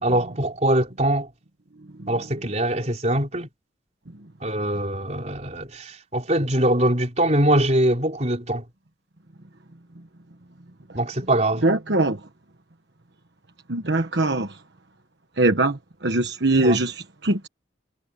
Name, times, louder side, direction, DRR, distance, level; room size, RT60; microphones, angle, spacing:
voice 1, 0.0-1.3 2.1-3.5 4.4-8.6 10.9-11.6 16.5-16.8, right 1 dB, 35° right, 4.3 m, -23 dB
voice 2, 11.6-12.2 13.7-14.6 15.4-17.5, right 2 dB, 60° right, 1.3 m, -22 dB
head